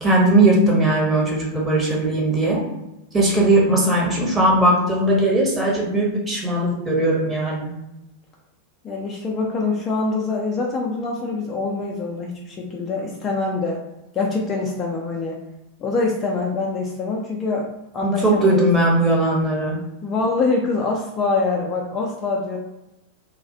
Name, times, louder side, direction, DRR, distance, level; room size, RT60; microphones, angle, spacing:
voice 1, 0.0-2.6 3.1-7.7 18.0-19.8, right 1 dB, 15° right, -3 dB, 0.8 m, -18 dB
voice 2, 8.8-13.8 14.1-15.4 15.8-17.7 17.9-19.1 20.0-22.6, left 3 dB, 25° left, -1 dB, 0.4 m, -24 dB
2.3 x 2.1 x 2.6 m, 0.92 s
figure-of-eight pair, 90°, 0 cm